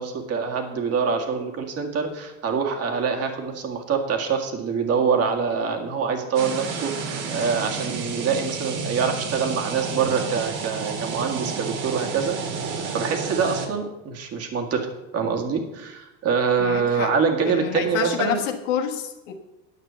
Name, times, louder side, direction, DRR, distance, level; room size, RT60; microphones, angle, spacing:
voice 1, 0.0-12.4 12.9-14.9 15.1-18.4, right 6 dB, 40° right, 3 dB, 1.9 m, -25 dB
sound 1, 6.4-13.7, right 5 dB, 60° right, 1.9 m, -31 dB
voice 2, 16.6-17.1 17.5-19.3, left 9 dB, 80° left, 2 dB, 1.5 m, -28 dB
10.0 x 6.1 x 6.9 m, 1.0 s
supercardioid pair, 110°, 36 cm